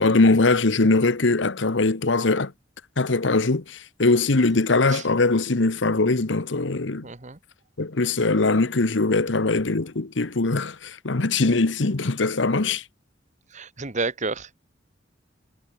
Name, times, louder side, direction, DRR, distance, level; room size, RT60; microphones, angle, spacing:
voice 1, 0.0-2.5 3.0-7.1 7.8-12.8, left 3 dB, 75° left, 1.1 m, -21 dB
voice 2, 7.0-7.4 13.5-14.6, right 3 dB, 40° right, 1.7 m, -30 dB
head